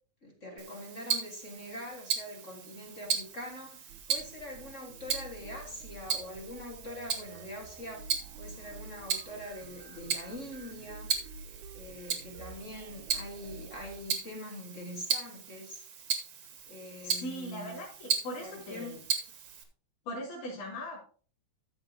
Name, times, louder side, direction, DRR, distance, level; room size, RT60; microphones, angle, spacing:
voice 1, 0.2-8.1 8.4-11.1 11.7-15.8 16.7-17.8 18.4-18.9, left 1 dB, 30° left, 0 dB, 1.6 m, -44 dB
Tick-tock, 0.6-19.6, right 7 dB, 55° right, 2.0 m, -37 dB
sound 1, 3.9-14.0, right 3 dB, 75° right, 2.1 m, -50 dB
voice 2, 17.0-19.0 20.1-21.0, left 1 dB, 75° left, -6 dB, 4.7 m, -39 dB
13.5 x 7.3 x 2.9 m, 0.42 s
omnidirectional pair, 3.5 m